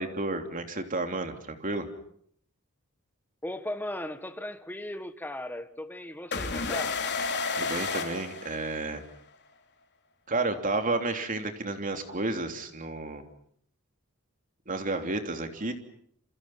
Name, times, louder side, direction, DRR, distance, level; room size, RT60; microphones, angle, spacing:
voice 1, 0.0-1.9 7.5-9.0 10.3-13.3 14.7-15.7, right 2 dB, 40° right, 3.2 m, -31 dB
voice 2, 3.4-7.0, left 1 dB, 10° left, 1.5 m, -37 dB
sound 1, 6.3-9.1, left 4 dB, 55° left, 3.6 m, -31 dB
28.5 x 27.5 x 5.9 m
head